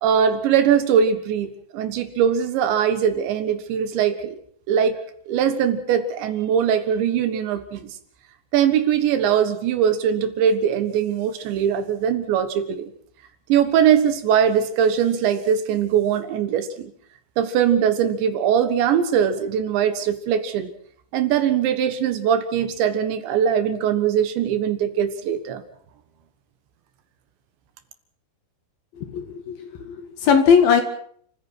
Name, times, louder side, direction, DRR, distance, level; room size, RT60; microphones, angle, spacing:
voice 1, 0.0-4.4 4.7-5.0 5.3-7.9 8.5-12.9 13.5-16.9 17.4-20.7 21.1-25.6, right 8 dB, 70° right, 10 dB, 3.6 m, -21 dB
voice 2, 29.0-30.8, left 6 dB, 55° left, 6 dB, 3.3 m, -19 dB
30.0 x 15.5 x 6.3 m, 0.62 s
omnidirectional pair, 5.5 m